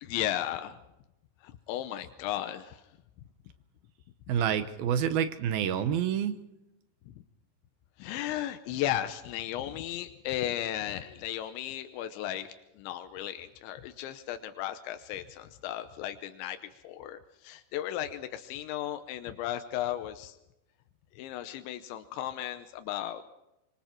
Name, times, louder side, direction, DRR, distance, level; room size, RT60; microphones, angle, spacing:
voice 1, 0.0-0.8 1.4-2.8 8.0-20.4 21.2-23.2, left 12 dB, 90° left, 8 dB, 3.3 m, -35 dB
voice 2, 4.3-6.4, right 9 dB, 70° right, 10 dB, 2.5 m, -28 dB
25.5 x 24.0 x 4.5 m, 0.91 s
omnidirectional pair, 5.1 m